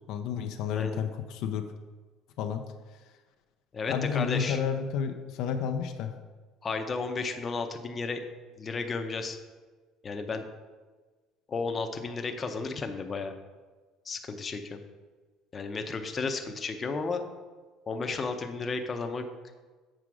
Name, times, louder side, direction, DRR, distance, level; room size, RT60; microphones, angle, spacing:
voice 1, 0.1-1.6 2.4-2.7 3.9-6.1, left 7 dB, 70° left, 6 dB, 0.5 m, -31 dB
voice 2, 0.7-1.0 3.7-4.6 6.6-8.2 8.6-9.4 10.0-10.4 11.5-13.3 14.1-14.8 15.5-17.2 17.9-19.3, left 4 dB, 25° left, 5 dB, 0.7 m, -33 dB
7.6 x 5.0 x 4.8 m, 1.3 s
cardioid pair, 125°, 0 cm